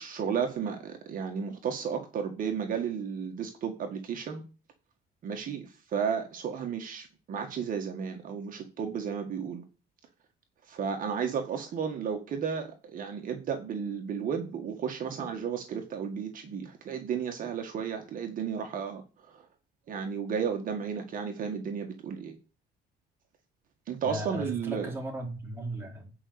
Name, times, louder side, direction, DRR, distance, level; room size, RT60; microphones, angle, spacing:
voice 1, 0.0-4.4 5.2-9.6 10.6-19.4 19.9-22.4 23.9-24.9, right 7 dB, 55° right, 1.8 m, -33 dB
voice 2, 24.0-26.1, right 1 dB, 15° right, 4.3 m, -36 dB
9.8 x 5.3 x 8.1 m
cardioid pair, 110°, 17 cm